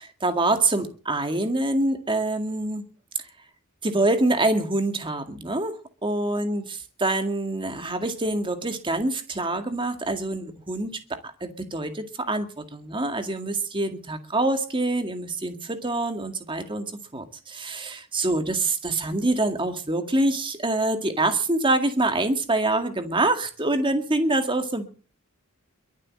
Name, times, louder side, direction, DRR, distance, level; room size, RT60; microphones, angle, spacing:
voice 1, 0.0-2.8 3.8-6.6 7.0-24.9, right 2 dB, 25° right, 2.0 m, -25 dB
22.5 x 7.6 x 7.7 m
head